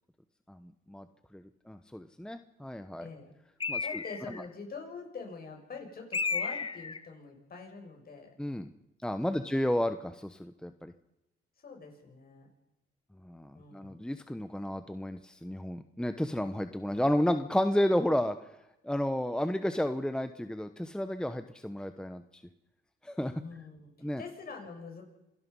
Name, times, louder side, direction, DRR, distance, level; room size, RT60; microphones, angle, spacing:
voice 1, 0.5-1.1 1.3-3.1 3.7-3.8 8.4-8.7 9.0-10.9 13.2-18.4 18.8-22.4 23.0-23.4 24.0-24.2, left 1 dB, 5° left, 9 dB, 1.1 m, -32 dB
voice 2, 3.0-3.3 3.8-8.3 9.3-9.5 11.6-12.5 13.5-14.0 23.3-25.1, left 4 dB, 50° left, 3 dB, 6.7 m, -45 dB
Bird, 3.6-4.5 6.1-7.0, left 4 dB, 25° left, 0.9 m, -33 dB
27.0 x 18.0 x 5.6 m, 0.90 s
cardioid pair, 90°, 20 cm